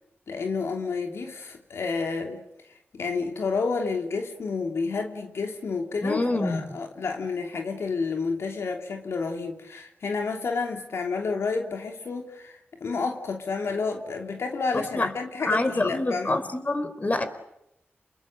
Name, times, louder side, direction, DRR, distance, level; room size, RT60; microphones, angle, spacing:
voice 1, 0.3-2.4 2.9-16.4, left 4 dB, 80° left, 3 dB, 3.1 m, -30 dB
voice 2, 6.0-6.6 14.7-15.1 15.4-17.3, left 2 dB, 35° left, 9 dB, 4.4 m, -26 dB
30.0 x 21.0 x 8.1 m, 0.85 s
cardioid pair, 65°, 4 cm